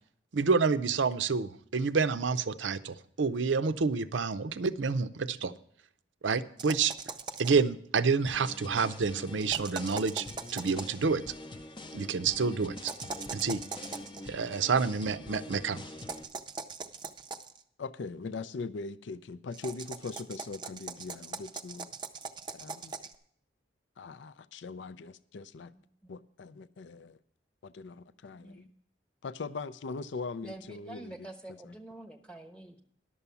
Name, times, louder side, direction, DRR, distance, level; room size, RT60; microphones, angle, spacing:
voice 1, 0.3-5.5 6.2-6.9 7.4-10.3 10.5-11.2 11.9-12.9 13.3-13.6 14.3-15.8, right 5 dB, 85° right, 12 dB, 0.6 m, -28 dB
sound 1, 6.6-7.7 9.4-11.0 12.8-14.2 16.0-17.6 19.5-23.1, right 4 dB, 25° right, 0.5 m, -41 dB
sound 2, 8.3-16.2, left 2 dB, 25° left, 0.5 m, -45 dB
voice 2, 17.8-21.9 22.5-22.9 24.0-25.7 26.1-27.2 27.6-28.7 29.2-31.8, left 4 dB, 75° left, 15 dB, 0.4 m, -41 dB
voice 3, 25.7-26.1 28.3-28.7 30.4-32.8, right 2 dB, 5° left, 5 dB, 1.0 m, -47 dB
11.5 x 7.0 x 6.9 m, 0.64 s
head